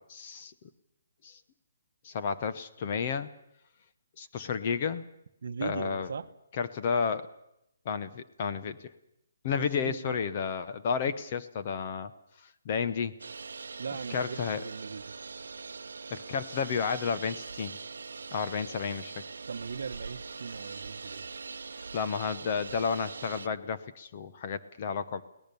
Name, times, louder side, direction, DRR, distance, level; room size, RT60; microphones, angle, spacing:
voice 1, 0.1-0.5 1.2-1.4 2.0-3.3 4.2-5.0 5.6-6.1 6.6-7.3 7.8-8.9 9.4-12.1 12.6-13.2 14.1-14.6 16.1-17.8 18.3-19.2 21.9-25.2, left 6 dB, 25° left, 10 dB, 0.9 m, -32 dB
voice 2, 5.4-6.3 9.5-10.2 13.8-15.0 19.5-21.2, right 5 dB, 55° right, 10 dB, 1.0 m, -39 dB
sound 1, 13.2-23.5, right 4 dB, 85° right, 0.7 m, -42 dB
23.0 x 18.0 x 7.0 m, 0.79 s
hypercardioid pair, 175°, 0 cm